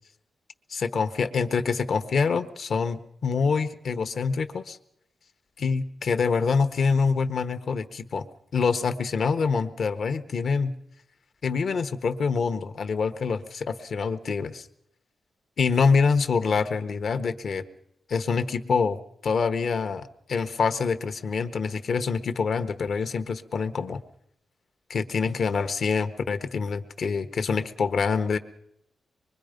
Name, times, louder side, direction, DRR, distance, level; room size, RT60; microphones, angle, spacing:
voice 1, 0.7-4.8 5.6-8.3 8.5-10.7 11.4-14.7 15.6-17.6 18.1-24.0 24.9-28.4, left 5 dB, 60° left, 9 dB, 1.2 m, -26 dB
25.0 x 22.5 x 5.2 m, 0.74 s
wide cardioid pair, 145°, 0 cm